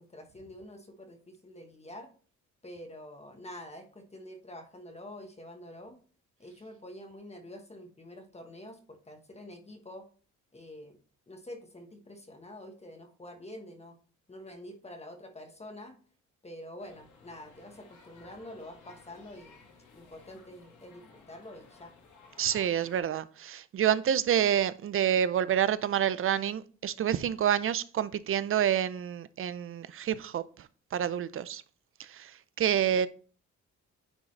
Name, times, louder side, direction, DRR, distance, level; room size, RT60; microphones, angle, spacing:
voice 1, 0.0-2.1 2.6-6.0 6.4-10.1 10.5-11.0 11.3-14.0 14.3-15.9 16.4-19.7 19.9-21.9, left 1 dB, 20° left, 1.2 m, -47 dB
sound 1, 16.8-23.0, left 4 dB, 80° left, 2.0 m, -56 dB
voice 2, 22.4-31.6 32.0-33.1, right 9 dB, 45° right, 0.5 m, -28 dB
9.8 x 3.8 x 3.2 m
cardioid pair, 90°, 30 cm